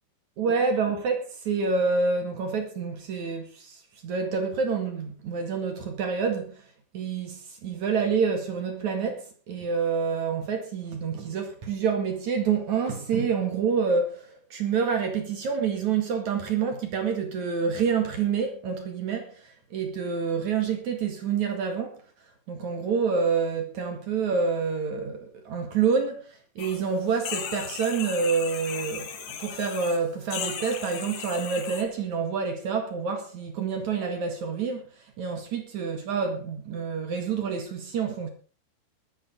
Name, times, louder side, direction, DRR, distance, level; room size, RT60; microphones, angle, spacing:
voice 1, 0.4-6.6 6.9-22.0 22.5-34.8 35.2-38.3, right 5 dB, 50° right, 2.6 m, -27 dB
sound 1, 26.6-26.8 27.1-30.0 30.3-31.8, left 8 dB, 65° left, 3.9 m, -36 dB
21.5 x 9.8 x 3.8 m
omnidirectional pair, 5.4 m